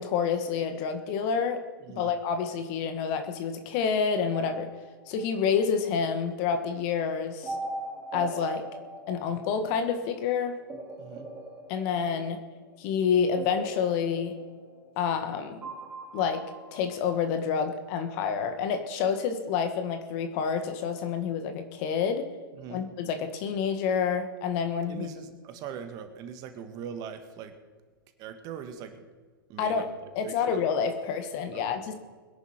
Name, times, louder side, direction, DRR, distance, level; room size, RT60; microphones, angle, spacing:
voice 1, 0.0-1.6 1.9-4.7 5.1-7.5 8.1-8.6 9.1-10.6 11.7-12.4 12.8-14.3 14.9-15.6 16.1-16.4 16.7-22.3 22.7-25.1 29.6-29.8 30.1-31.9, left 6 dB, 40° left, 7 dB, 1.8 m, -28 dB
voice 2, 1.8-2.1 11.0-11.3 22.6-22.8 24.9-27.6 28.2-29.0 29.5-30.6 31.5-31.8, right 8 dB, 30° right, 8 dB, 1.6 m, -41 dB
sound 1, 4.3-5.6 7.4-10.0 10.7-12.6 13.4-15.3 15.6-17.0, right 2 dB, 15° right, 3.2 m, -41 dB
21.5 x 10.5 x 4.5 m, 1.4 s
figure-of-eight pair, 115°, 12 cm